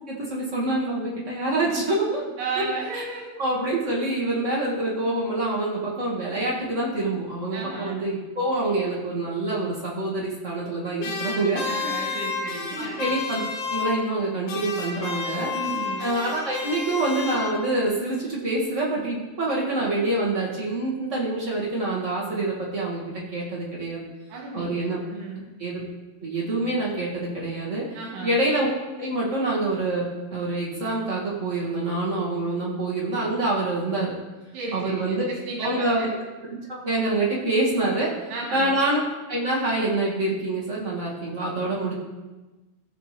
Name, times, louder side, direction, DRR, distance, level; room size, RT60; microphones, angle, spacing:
voice 1, 0.1-2.2 2.5-2.6 2.9-3.0 3.4-11.6 12.0-12.2 13.0-13.4 13.7-15.5 16.0-24.0 24.5-25.0 25.6-25.8 26.2-27.9 28.2-28.7 29.0-34.2 34.7-35.3 35.6-36.1 36.5-39.0 39.3-41.9, right 2 dB, 55° right, -6 dB, 0.8 m, -26 dB
voice 2, 2.4-3.4 7.5-8.0 11.6-13.0 15.5-16.1 24.3-25.4 27.9-28.4 34.5-36.2 38.3-38.7, right 3 dB, 80° right, -2 dB, 4.0 m, -34 dB
sound 1, 11.0-14.2 14.5-17.9, left 4 dB, 80° left, 3.4 m, -31 dB
17.0 x 6.9 x 3.4 m, 1.1 s
omnidirectional pair, 4.7 m